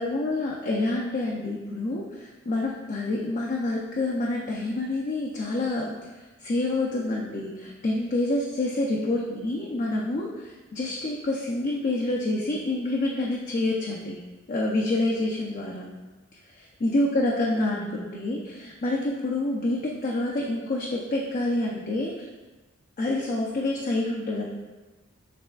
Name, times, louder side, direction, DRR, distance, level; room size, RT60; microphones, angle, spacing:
voice 1, 0.0-5.9 6.4-14.2 14.5-16.0 16.5-22.3 23.0-24.4, left 2 dB, 40° left, -2 dB, 0.4 m, -27 dB
6.7 x 3.2 x 2.3 m, 1.2 s
head